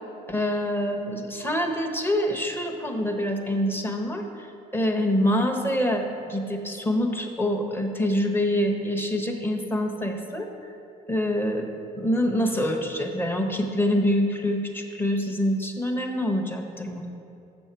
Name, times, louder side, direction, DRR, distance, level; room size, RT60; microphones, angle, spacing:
voice 1, 0.3-10.5 11.1-11.7 11.9-17.1, left 1 dB, 15° left, 3 dB, 0.8 m, -26 dB
7.4 x 6.3 x 4.5 m, 2.8 s
cardioid pair, 110°, 17 cm